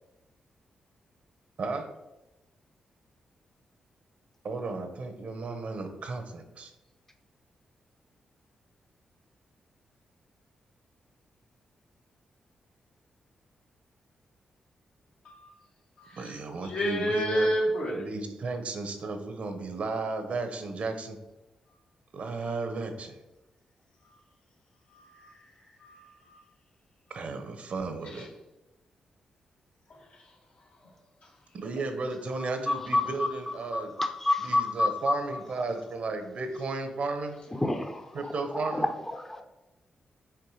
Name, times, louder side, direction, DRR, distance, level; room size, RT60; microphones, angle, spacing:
voice 1, 4.4-6.7 16.2-17.5 17.9-21.2 22.1-23.1 27.1-28.3 31.5-33.9 34.4-37.4 38.1-38.9, right 3 dB, 60° right, 7 dB, 0.9 m, -34 dB
voice 2, 16.0-16.3 16.6-18.1 24.9-25.3 25.8-26.4 28.2-28.3, equal, 75° left, -3 dB, 2.1 m, -30 dB
voice 3, 32.7-33.3 33.7-35.1 37.6-38.0 38.7-38.8 39.3-39.4, left 2 dB, 15° left, 5 dB, 0.7 m, -28 dB
6.0 x 3.4 x 4.8 m, 0.99 s
supercardioid pair, 55°, 2 cm